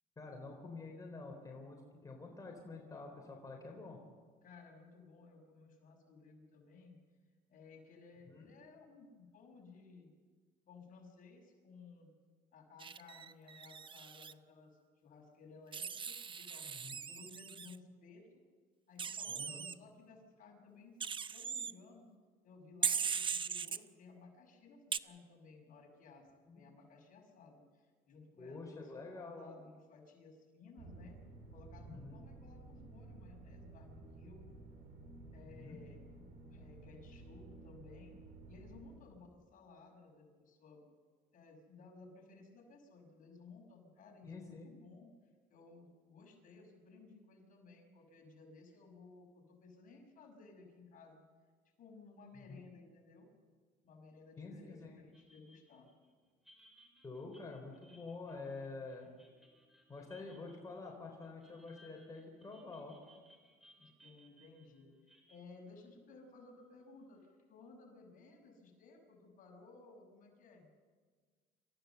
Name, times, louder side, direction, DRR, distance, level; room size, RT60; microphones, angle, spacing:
voice 1, 0.2-4.0 8.2-8.5 16.6-17.0 19.4-19.5 26.5-26.6 28.4-29.6 31.9-32.2 35.4-35.8 44.2-44.7 52.5-52.6 54.4-55.0 57.0-59.1 59.9-63.0, left 3 dB, 20° left, 0 dB, 4.0 m, -48 dB
voice 2, 4.4-7.0 7.5-10.1 10.7-12.1 12.5-14.7 15.0-16.7 17.1-18.3 18.9-22.1 22.4-31.2 31.5-34.5 35.3-36.0 36.5-38.2 38.5-40.8 41.3-45.1 45.5-51.2 51.8-53.3 53.8-55.9 63.8-70.7, left 4 dB, 55° left, 1 dB, 6.1 m, -58 dB
Wild animals, 12.8-14.3 15.7-17.8 19.0-19.7 21.0-21.7 22.8-23.8 24.9-25.0, right 6 dB, 30° right, 0.6 m, -39 dB
sound 1, 30.8-39.0, right 2 dB, 80° right, 4.2 m, -54 dB
sound 2, 55.1-66.9, equal, ahead, 4.6 m, -67 dB
27.5 x 15.0 x 7.1 m, 1.5 s
cardioid pair, 110°, 17 cm